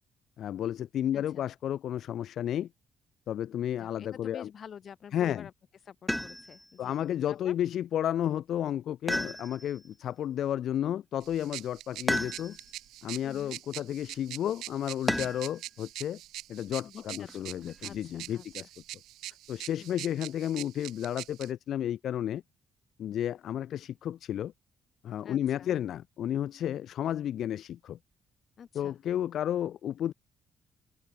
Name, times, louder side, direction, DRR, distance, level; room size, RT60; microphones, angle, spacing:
voice 1, 0.4-2.7 3.3-4.5 5.1-5.5 6.8-12.6 13.0-16.2 16.5-18.7 19.5-22.4 23.0-24.5 25.0-28.0 28.7-30.1, left 10 dB, 70° left, 0.6 m, -32 dB
voice 2, 1.1-1.4 3.8-5.5 5.9-7.0 7.3-7.6 13.2-13.6 16.8-18.7 19.8-20.0 25.2-25.8 28.6-29.0, left 7 dB, 55° left, 3.8 m, -48 dB
sound 1, 6.1-6.7 9.1-9.9 12.1-12.8 15.1-15.6 17.3-17.9, left 1 dB, 5° left, 1.6 m, -33 dB
sound 2, 11.2-21.5, right 15 dB, 90° right, 1.8 m, -44 dB
open air
cardioid pair, 90°, 0 cm